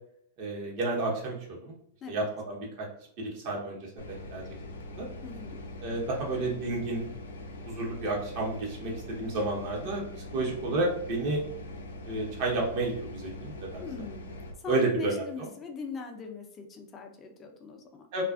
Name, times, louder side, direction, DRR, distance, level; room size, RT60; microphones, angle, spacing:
voice 1, 0.4-1.8 2.1-2.9 3.2-4.5 5.0-5.1 5.8-7.1 7.6-10.0 10.3-11.4 12.1-14.1 14.7-15.5 18.1-18.2, right 2 dB, 50° right, -2 dB, 1.0 m, -31 dB
sound 1, 4.0-14.5, left 1 dB, 80° left, 0.4 m, -42 dB
voice 2, 5.2-5.6 13.8-14.3 14.6-18.1, left 5 dB, 25° left, 3 dB, 0.5 m, -40 dB
2.4 x 2.3 x 2.4 m, 0.68 s
hypercardioid pair, 105°, 0 cm